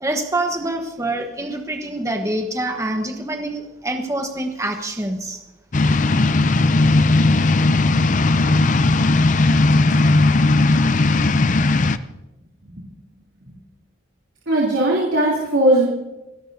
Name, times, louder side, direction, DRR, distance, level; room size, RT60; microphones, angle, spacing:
voice 1, 0.0-5.4, right 1 dB, 15° right, 4 dB, 1.1 m, -26 dB
sound 1, 5.7-12.0, left 2 dB, 40° left, 0.5 m, -16 dB
voice 2, 14.5-15.9, right 1 dB, 80° right, -4 dB, 3.1 m, -18 dB
28.5 x 12.0 x 2.7 m, 0.99 s
head